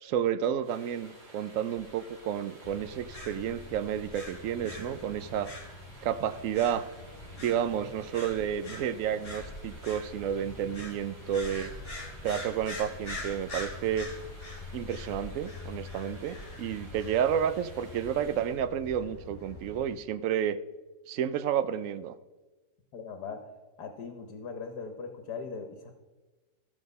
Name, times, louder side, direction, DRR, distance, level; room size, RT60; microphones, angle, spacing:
voice 1, 0.0-5.5 6.0-6.8 7.4-11.7 12.2-14.1 14.7-20.6 21.1-22.1, right 9 dB, 65° right, 14 dB, 0.8 m, -31 dB
sound 1, 0.6-18.6, right 1 dB, 85° right, 3.8 m, -53 dB
sound 2, 2.6-20.0, left 2 dB, 35° left, 2.5 m, -43 dB
voice 2, 22.9-23.4 23.8-25.9, left 5 dB, 75° left, 6 dB, 1.6 m, -40 dB
13.5 x 7.5 x 5.4 m, 1.2 s
omnidirectional pair, 1.8 m